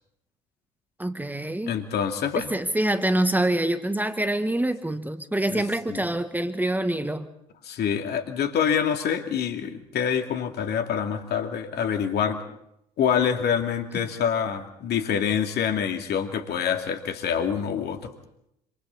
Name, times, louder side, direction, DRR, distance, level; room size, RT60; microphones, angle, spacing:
voice 1, 1.0-1.7 2.5-7.3, right 1 dB, 10° right, 9 dB, 1.5 m, -25 dB
voice 2, 1.7-2.5 5.5-5.6 5.9-6.0 7.6-12.4 13.0-18.1, left 8 dB, 55° left, 6 dB, 2.5 m, -26 dB
27.0 x 26.5 x 4.0 m, 0.78 s
hypercardioid pair, 55°, 20 cm